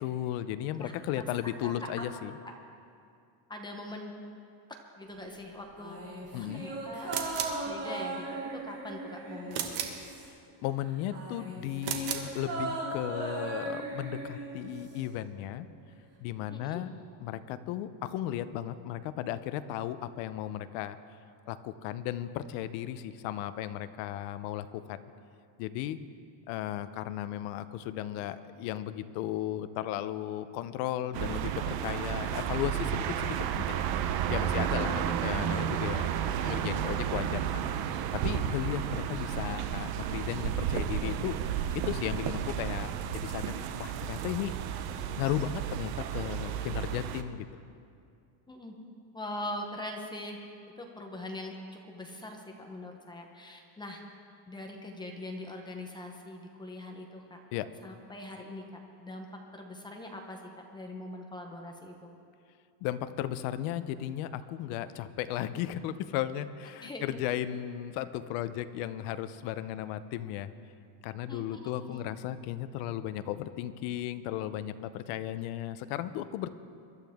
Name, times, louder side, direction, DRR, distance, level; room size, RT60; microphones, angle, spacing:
voice 1, 0.0-2.4 6.3-6.6 10.2-10.3 10.6-15.7 16.2-21.0 21.5-25.0 25.6-26.0 26.5-33.8 34.3-36.1 36.4-37.7 38.1-41.4 41.7-44.9 45.2-47.4 57.5-57.7 62.8-70.5 71.0-76.5, left 12 dB, 70° left, 13 dB, 0.8 m, -35 dB
voice 2, 3.5-4.1 5.0-6.0 6.3-7.2 7.6-9.7 16.5-16.8 34.5-34.7 48.5-48.7 49.1-50.4 50.8-54.0 54.5-57.4 57.8-58.6 59.0-59.3 59.5-60.4 60.7-61.9 66.8-67.2 71.3-72.0, left 1 dB, 10° left, 2 dB, 0.7 m, -42 dB
sound 1, 5.8-10.5 10.8-15.1 15.4-15.5, right 2 dB, 30° right, 2.8 m, -38 dB
sound 2, 7.1-7.6 9.5-10.0 11.8-12.3, right 9 dB, 80° right, 1.6 m, -34 dB
sound 3, 31.1-47.2, right 9 dB, 50° right, 0.7 m, -32 dB
23.0 x 12.0 x 3.6 m, 2.4 s
cardioid pair, 180°, 50 cm